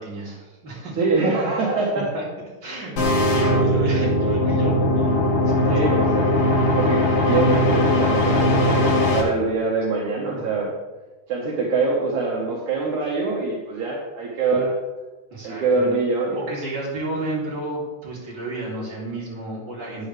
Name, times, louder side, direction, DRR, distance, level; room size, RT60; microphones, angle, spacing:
voice 1, 0.0-1.0 1.9-2.2 2.6-6.0 10.3-10.6 15.3-15.9 16.3-20.1, right 2 dB, 30° right, -6 dB, 3.7 m, -31 dB
voice 2, 1.0-2.1 5.7-6.2 6.8-10.7 11.3-14.7 15.4-16.4, right 3 dB, 65° right, -4 dB, 2.7 m, -24 dB
sound 1, 3.0-9.2, left 1 dB, 70° left, 3.5 m, -19 dB
13.5 x 9.5 x 3.4 m, 1.2 s
omnidirectional pair, 4.0 m